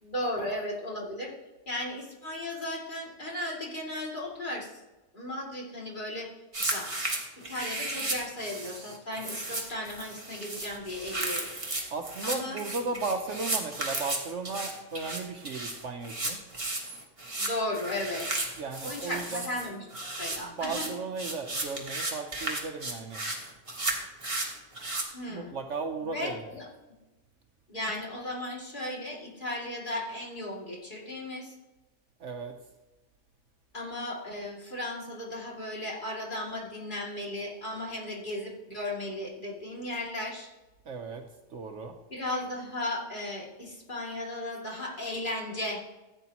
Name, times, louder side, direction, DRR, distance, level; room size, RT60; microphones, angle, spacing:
voice 1, 0.0-1.3 1.7-4.7 5.1-6.3 6.7-6.9 7.5-11.6 12.2-12.6 17.4-18.3 18.8-20.9 25.1-25.5 26.0-26.7 27.7-31.5 33.7-40.5 42.1-45.8, left 1 dB, 35° left, -4 dB, 2.7 m, -35 dB
sound 1, 6.5-25.0, right 2 dB, 25° right, 1.5 m, -34 dB
voice 2, 11.9-16.4 18.6-19.5 20.4-23.2 25.3-26.4 32.2-32.5 40.9-41.2 41.5-41.9, right 4 dB, 60° right, 5 dB, 1.0 m, -35 dB
14.5 x 9.1 x 3.0 m, 1.1 s
omnidirectional pair, 1.5 m